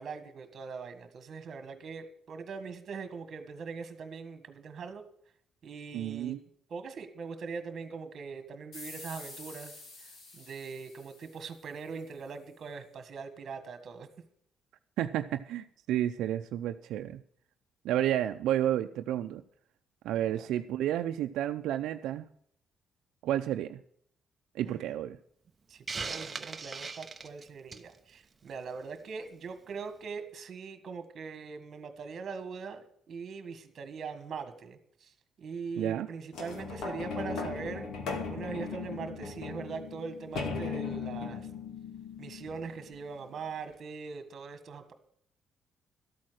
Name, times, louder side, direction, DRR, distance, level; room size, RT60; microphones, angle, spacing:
voice 1, 0.0-5.1 5.6-6.4 6.7-9.8 10.3-14.1 20.4-20.6 24.6-24.9 25.7-35.1 35.4-37.9 38.3-41.5 42.2-44.9, right 5 dB, 40° right, 9 dB, 1.8 m, -41 dB
voice 2, 5.9-6.4 15.0-17.2 17.8-19.4 20.0-22.3 23.2-23.8 24.5-25.2 35.8-36.1, right 12 dB, 85° right, 6 dB, 0.6 m, -31 dB
sound 1, 8.7-12.0, left 2 dB, 50° left, 3.2 m, -48 dB
Hiss, 25.9-27.9, right 4 dB, 20° right, 0.8 m, -38 dB
sound 2, 36.3-43.1 43.7-43.8, left 5 dB, 65° left, 2.3 m, -38 dB
13.0 x 8.7 x 6.4 m, 0.65 s
cardioid pair, 165°, 0 cm